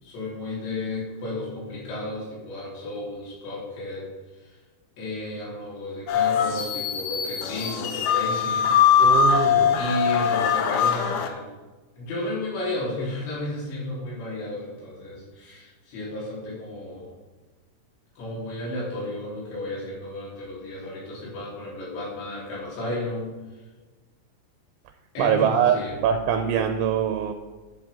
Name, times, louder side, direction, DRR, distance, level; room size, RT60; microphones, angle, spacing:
voice 1, 0.0-4.1 4.3-4.6 5.0-8.8 9.8-11.5 12.0-17.1 18.2-23.6 25.1-25.9, left 1 dB, 65° left, -6 dB, 6.0 m, -33 dB
sound 1, 6.1-11.3, left 7 dB, 85° left, 2.2 m, -21 dB
voice 2, 9.0-9.9 25.2-27.3, right 8 dB, 85° right, 6 dB, 3.1 m, -23 dB
12.0 x 10.0 x 3.7 m, 1.2 s
omnidirectional pair, 5.5 m